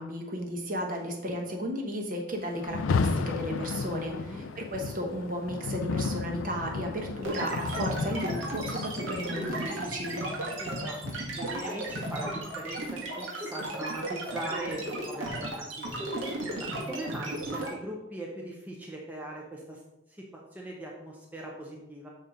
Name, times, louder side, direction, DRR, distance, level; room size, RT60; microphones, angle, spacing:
voice 1, 0.0-10.2, equal, 40° right, 1 dB, 1.1 m, -34 dB
Rain, 2.6-11.7, left 4 dB, 80° left, 0.4 m, -34 dB
sound 1, 7.2-17.7, right 1 dB, 80° right, 1.7 m, -35 dB
voice 2, 10.6-11.0 11.4-16.1 16.8-19.8 20.1-20.2 20.5-22.1, right 1 dB, 10° right, -2 dB, 0.7 m, -40 dB
6.5 x 4.2 x 5.0 m, 0.93 s
head